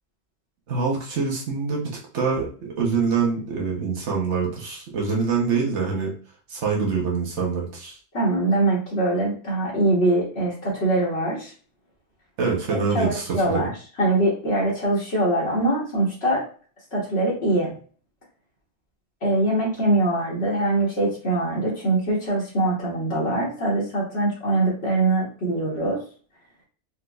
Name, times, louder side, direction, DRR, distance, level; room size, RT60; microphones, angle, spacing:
voice 1, 0.7-6.1 6.5-8.0 12.4-13.7, right 5 dB, 85° right, -2 dB, 1.2 m, -25 dB
voice 2, 8.1-11.5 12.7-13.7 14.0-16.4 16.9-17.7 19.2-26.0, right 2 dB, 70° left, -6 dB, 1.4 m, -23 dB
4.5 x 2.3 x 2.3 m, 0.41 s
omnidirectional pair, 1.1 m